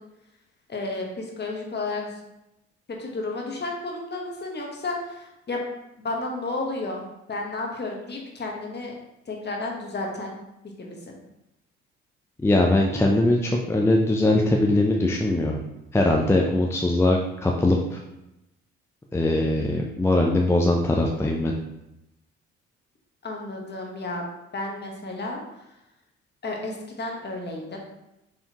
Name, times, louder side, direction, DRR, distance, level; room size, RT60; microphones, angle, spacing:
voice 1, 0.7-2.2 2.9-5.7 6.0-7.0 7.3-8.9 9.2-10.3 10.8-11.1 23.2-25.4 26.4-27.8, left 2 dB, 35° left, 0 dB, 1.2 m, -32 dB
voice 2, 12.4-15.6 15.9-18.0 19.1-21.5, left 1 dB, 10° left, 0 dB, 0.5 m, -21 dB
4.5 x 3.4 x 2.9 m, 0.90 s
supercardioid pair, 60°, 29 cm